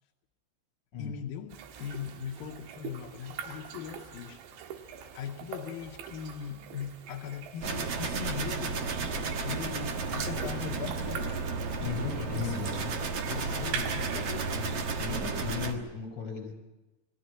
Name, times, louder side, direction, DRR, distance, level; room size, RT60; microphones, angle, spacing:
voice 1, 1.0-4.4 4.7-8.8 9.4-11.4 11.8-12.8 13.3-14.6, left 8 dB, 80° left, 2.1 m, -40 dB
sound 1, 1.5-15.1, right 7 dB, 80° right, 3.6 m, -43 dB
sound 2, 7.6-15.7, right 4 dB, 60° right, 1.6 m, -33 dB
voice 2, 11.8-12.9 14.5-14.7 15.0-16.5, left 6 dB, 25° left, 6.5 m, -36 dB
21.5 x 15.0 x 8.5 m
omnidirectional pair, 5.0 m